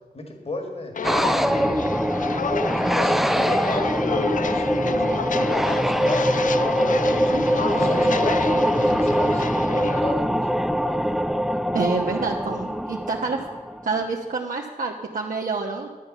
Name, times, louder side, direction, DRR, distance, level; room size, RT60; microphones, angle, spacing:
voice 1, 0.1-1.0 1.4-2.3 2.9-5.1 5.7-9.5 9.7-10.5, left 2 dB, 40° left, 4 dB, 2.0 m, -34 dB
Walk footsteps, 0.9-10.0, left 6 dB, 60° left, 0.5 m, -30 dB
sound 1, 1.0-14.0, equal, ahead, 0.5 m, -23 dB
voice 2, 11.7-13.4 13.8-15.9, right 4 dB, 60° right, -1 dB, 1.1 m, -27 dB
12.0 x 8.8 x 6.8 m, 1.3 s
wide cardioid pair, 80°, 15 cm